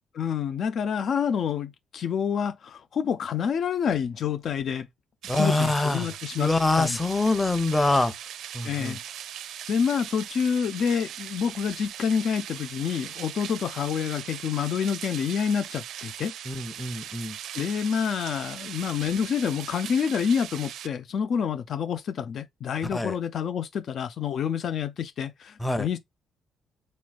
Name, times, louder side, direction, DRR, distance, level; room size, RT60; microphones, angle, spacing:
voice 1, 0.1-4.9 5.3-6.5 6.8-7.0 8.6-9.0 9.7-16.3 17.5-26.0, left 7 dB, 60° left, 0.5 m, -28 dB
sound 1, 5.2-20.9, right 10 dB, 80° right, 0.4 m, -40 dB
voice 2, 5.3-6.1 6.4-8.1 8.5-9.0 16.5-17.4 22.9-23.2 25.6-25.9, left 2 dB, 15° left, 0.9 m, -25 dB
4.1 x 3.1 x 2.4 m
cardioid pair, 90°, 0 cm